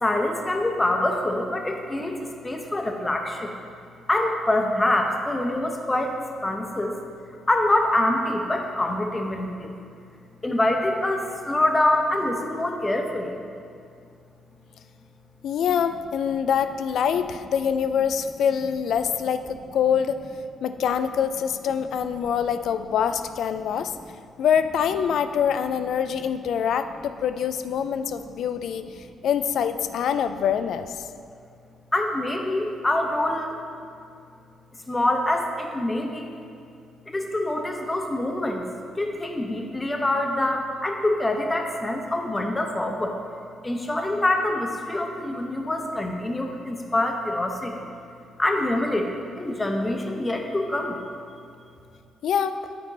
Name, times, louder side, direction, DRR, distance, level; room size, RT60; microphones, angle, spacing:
voice 1, 0.0-3.5 4.1-7.0 7.5-9.7 10.4-13.4 23.9-24.0 31.9-33.6 34.9-36.4 37.1-38.7 39.0-43.2 43.6-47.9 48.4-51.0, left 1 dB, 20° left, 2 dB, 1.0 m, -25 dB
voice 2, 15.4-20.2 20.6-23.9 24.4-31.1 52.2-52.5, left 8 dB, 65° left, 10 dB, 0.3 m, -25 dB
8.8 x 4.4 x 4.0 m, 2.3 s
hypercardioid pair, 50°, 0 cm